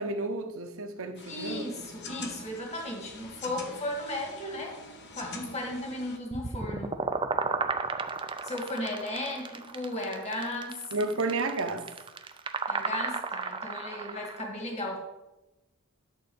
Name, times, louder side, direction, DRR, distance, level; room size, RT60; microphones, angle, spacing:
voice 1, 0.0-1.9 10.9-11.9, right 2 dB, 65° right, 7 dB, 0.9 m, -32 dB
sound 1, 1.1-6.2, left 3 dB, 50° left, 1.1 m, -45 dB
voice 2, 1.3-4.8 5.2-6.9 8.4-10.8 12.7-15.0, left 1 dB, 30° left, 0 dB, 1.9 m, -35 dB
sound 2, 6.3-14.4, right 4 dB, 20° right, 0.5 m, -33 dB
11.0 x 4.1 x 7.0 m, 1.0 s
head